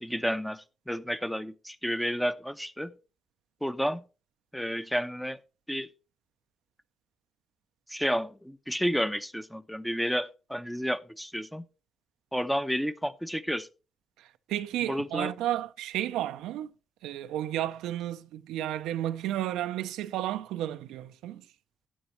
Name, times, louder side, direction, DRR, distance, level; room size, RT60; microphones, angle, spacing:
voice 1, 0.0-2.9 3.6-4.0 4.5-5.4 5.7-5.9 7.9-11.6 12.3-13.7 14.9-15.3, equal, 5° left, 0.8 m, -31 dB
voice 2, 14.2-16.7 17.0-21.4, right 13 dB, 90° right, 0.5 m, -32 dB
12.5 x 9.3 x 3.1 m
supercardioid pair, 65°, 0 cm